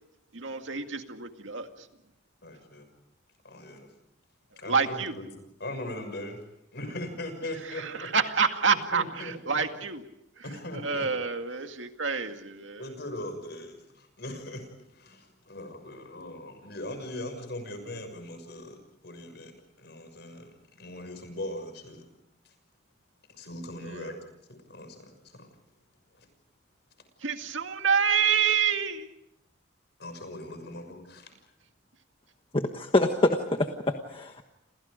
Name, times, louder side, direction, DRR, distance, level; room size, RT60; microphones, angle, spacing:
voice 1, 0.3-1.9 4.7-5.2 7.7-10.0 10.8-12.9 23.8-24.1 27.2-29.1, right 6 dB, 90° right, 6 dB, 2.1 m, -28 dB
voice 2, 2.4-2.9 3.4-3.9 4.6-5.3 5.6-6.4 6.7-8.1 8.7-9.8 10.4-11.1 12.8-18.8 19.0-19.5 19.8-22.1 22.4-22.5 23.3-24.2 24.5-25.5 26.2-26.3 30.0-31.3, left 1 dB, 60° left, 8 dB, 6.3 m, -40 dB
voice 3, 32.5-34.4, left 1 dB, 30° left, 4 dB, 1.4 m, -26 dB
30.0 x 27.5 x 5.2 m, 0.80 s
head